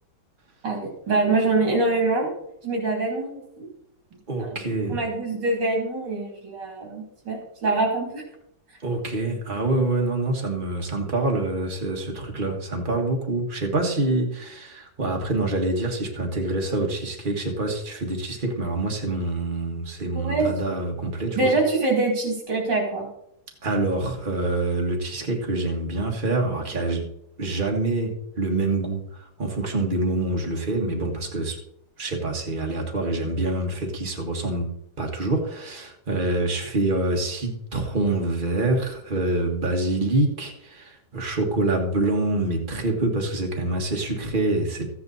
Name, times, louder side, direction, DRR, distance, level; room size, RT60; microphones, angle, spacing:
voice 1, 0.6-2.3 2.6-3.7 4.4-4.6 4.9-8.2 20.1-20.5 21.4-23.1, right 3 dB, 80° right, 1 dB, 3.4 m, -24 dB
voice 2, 4.3-5.0 8.8-21.5 23.6-27.1 27.4-31.6 32.0-34.7 35.0-44.9, right 2 dB, 30° right, 1 dB, 1.7 m, -26 dB
13.0 x 8.5 x 4.0 m, 0.75 s
omnidirectional pair, 1.9 m